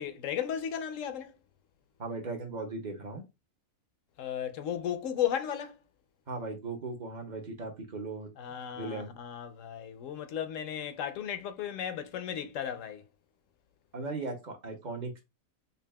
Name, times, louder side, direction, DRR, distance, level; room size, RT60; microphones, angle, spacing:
voice 1, 0.0-1.3 4.2-5.7 8.4-13.0, left 9 dB, 70° left, 0.9 m, -35 dB
voice 2, 2.0-3.2 6.3-8.3 8.7-9.1 13.9-15.2, right 3 dB, 45° right, 0.6 m, -37 dB
5.4 x 2.4 x 2.2 m
omnidirectional pair, 1.5 m